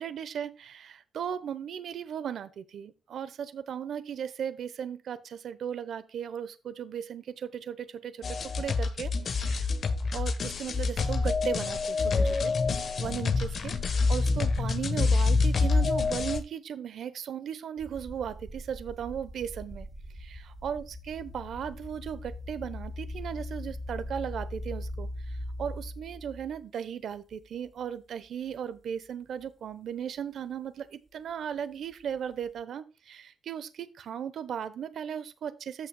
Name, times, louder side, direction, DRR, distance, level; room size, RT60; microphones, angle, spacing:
voice 1, 0.0-9.7 10.1-13.8 14.1-19.9 20.1-35.9, right 8 dB, 75° right, 14 dB, 0.9 m, -37 dB
sound 1, 8.2-16.4, left 4 dB, 55° left, 1.2 m, -27 dB
sound 2, 17.8-26.6 27.3-27.7 28.2-28.3 31.9-32.6, left 1 dB, 15° right, 2.9 m, -40 dB
14.5 x 5.7 x 2.2 m, 0.30 s
cardioid pair, 110°, 0 cm